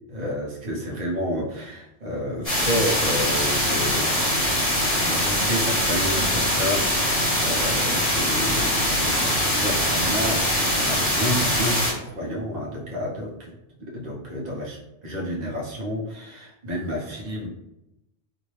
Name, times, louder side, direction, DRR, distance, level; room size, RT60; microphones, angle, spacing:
voice 1, 0.1-4.5 4.7-17.5, equal, 40° right, -4 dB, 0.9 m, -30 dB
sound 1, 2.4-11.9, equal, 30° left, 1.4 m, -23 dB
2.9 x 2.7 x 3.2 m, 0.89 s
omnidirectional pair, 1.3 m